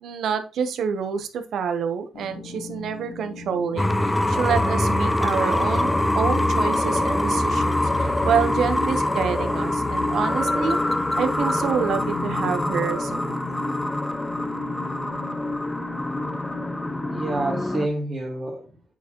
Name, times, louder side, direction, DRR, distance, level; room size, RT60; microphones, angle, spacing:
voice 1, 0.0-10.8 11.2-13.5, right 7 dB, 70° right, 8 dB, 0.9 m, -27 dB
sound 1, 2.1-17.6, left 4 dB, 65° left, 1.5 m, -38 dB
sound 2, 3.8-17.9, left 1 dB, 10° left, 0.6 m, -24 dB
voice 2, 17.1-18.9, right 2 dB, 40° right, -4 dB, 1.9 m, -29 dB
8.2 x 4.3 x 3.0 m, 0.32 s
cardioid pair, 90°, 0 cm